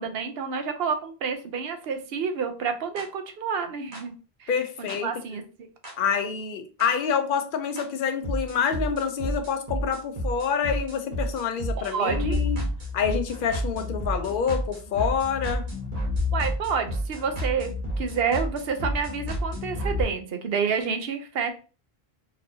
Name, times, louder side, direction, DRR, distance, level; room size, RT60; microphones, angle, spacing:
voice 1, 0.0-4.1 4.4-4.5 4.8-5.7 11.8-12.4 16.3-21.5, right 6 dB, 75° right, 7 dB, 0.8 m, -29 dB
sound 1, 3.0-3.1 3.9-4.0 4.9-5.0 5.8-5.9 6.8-6.9 7.8-7.9 8.2-20.0, left 1 dB, 40° right, 1.2 m, -30 dB
voice 2, 4.5-5.1 6.0-12.6 12.9-15.6, left 7 dB, 60° left, 7 dB, 0.7 m, -27 dB
4.1 x 2.7 x 2.7 m, 0.35 s
omnidirectional pair, 1.0 m